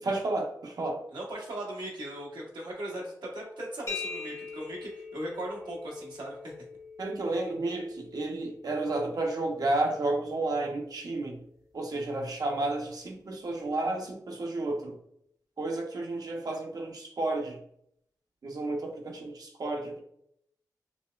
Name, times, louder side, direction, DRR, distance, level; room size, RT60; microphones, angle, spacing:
voice 1, 0.0-1.0 7.0-11.4 11.7-15.0 15.6-17.6 18.4-20.0, right 2 dB, 60° right, 1 dB, 0.6 m, -31 dB
voice 2, 1.1-6.4, right 1 dB, 85° right, -2 dB, 1.0 m, -38 dB
sound 1, 3.9-11.4, left 4 dB, 45° left, 0.7 m, -44 dB
4.1 x 2.2 x 2.3 m, 0.71 s
wide cardioid pair, 90°, 7 cm